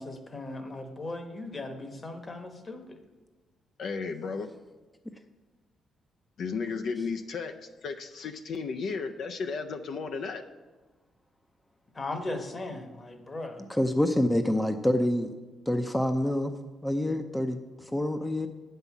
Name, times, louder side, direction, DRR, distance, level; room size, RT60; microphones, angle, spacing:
voice 1, 0.0-2.8 12.0-13.6, left 2 dB, 30° left, 6 dB, 1.1 m, -37 dB
voice 2, 3.8-4.5 6.4-10.4, left 5 dB, 65° left, 6 dB, 0.5 m, -34 dB
voice 3, 13.7-15.3 15.7-16.5 16.8-17.6 17.9-18.5, left 1 dB, 5° left, 7 dB, 0.5 m, -26 dB
7.9 x 5.5 x 7.2 m, 1.2 s
cardioid pair, 90°, 0 cm